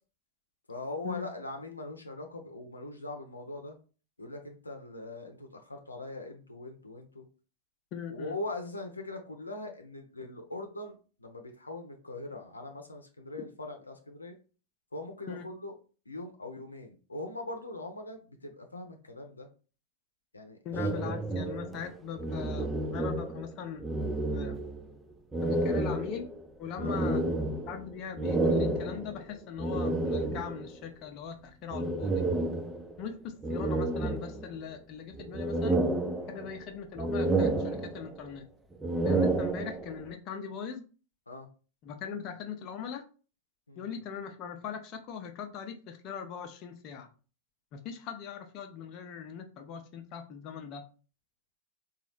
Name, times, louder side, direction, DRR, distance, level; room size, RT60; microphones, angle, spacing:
voice 1, 0.7-3.8 4.2-7.3 8.1-14.3 14.9-15.7 16.1-19.5 20.3-21.0 26.8-27.0 36.2-36.4 39.2-39.4 41.3-41.5 43.7-44.0, left 2 dB, 90° left, 4 dB, 0.6 m, -41 dB
voice 2, 7.9-8.4 15.3-15.5 20.6-23.9 24.3-24.6 25.4-26.3 26.6-27.2 27.7-32.1 33.0-35.8 36.3-38.4 39.0-40.8 41.8-43.0 43.8-47.1 47.7-50.8, left 7 dB, 40° left, 5 dB, 0.6 m, -40 dB
sound 1, 20.7-23.5 23.8-24.9 25.3-30.7 31.7-33.0 33.4-34.7 35.1-36.6 37.0-38.3 38.7-40.0, right 2 dB, 10° right, 0.4 m, -30 dB
3.9 x 2.4 x 3.1 m, 0.36 s
figure-of-eight pair, 100°, 0 cm